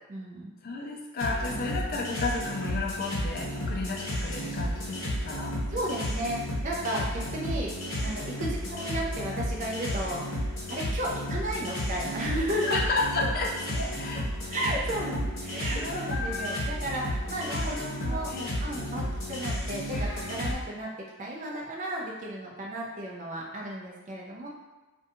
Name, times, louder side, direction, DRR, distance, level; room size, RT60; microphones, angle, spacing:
voice 1, 0.1-0.5 1.5-1.7 5.7-12.8 14.5-18.3 18.6-20.9 21.2-24.5, right 1 dB, 35° right, -3 dB, 0.4 m, -34 dB
voice 2, 0.6-5.6 8.4-8.5 12.7-14.3 15.0-15.3 15.7-16.6 17.5-17.8 18.0-18.5, left 3 dB, 45° left, 0 dB, 0.3 m, -33 dB
sound 1, 1.2-20.5, equal, 70° left, 0.7 m, -32 dB
2.5 x 2.2 x 2.7 m, 1.2 s
head